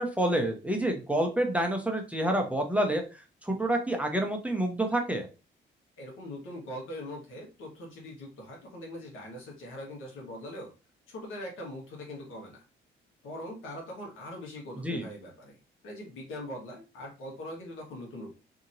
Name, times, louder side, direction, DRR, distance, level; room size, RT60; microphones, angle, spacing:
voice 1, 0.0-5.3 14.8-15.1, right 1 dB, 5° right, 2 dB, 0.6 m, -28 dB
voice 2, 6.0-10.7 11.1-12.6 13.2-15.6 15.8-18.4, left 1 dB, 90° left, 0 dB, 1.3 m, -42 dB
2.8 x 2.7 x 2.6 m, 0.31 s
cardioid pair, 90°, 20 cm